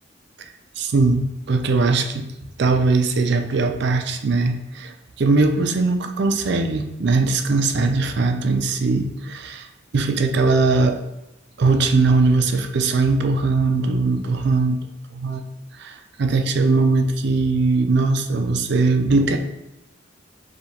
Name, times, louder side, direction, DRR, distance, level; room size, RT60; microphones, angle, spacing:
voice 1, 0.8-2.3 2.6-9.7 9.9-11.0 11.6-14.8 15.1-15.4 15.8-19.4, right 3 dB, 60° right, 6 dB, 0.4 m, -20 dB
4.9 x 2.4 x 4.2 m, 0.90 s
head